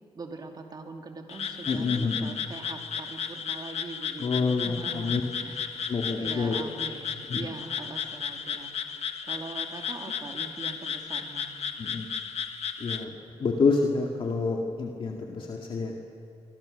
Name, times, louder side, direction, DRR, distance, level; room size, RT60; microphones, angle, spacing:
voice 1, 0.1-11.5, right 3 dB, 35° right, 3 dB, 2.6 m, -42 dB
Frog, 1.3-13.0, left 7 dB, 65° left, 1.5 m, -34 dB
voice 2, 1.7-2.3 4.2-5.2 5.9-6.7 7.3-7.4 11.8-12.1 12.8-13.1 13.4-16.0, left 4 dB, 50° left, 1 dB, 2.2 m, -28 dB
26.0 x 25.0 x 6.7 m, 2.5 s
cardioid pair, 115°, 11 cm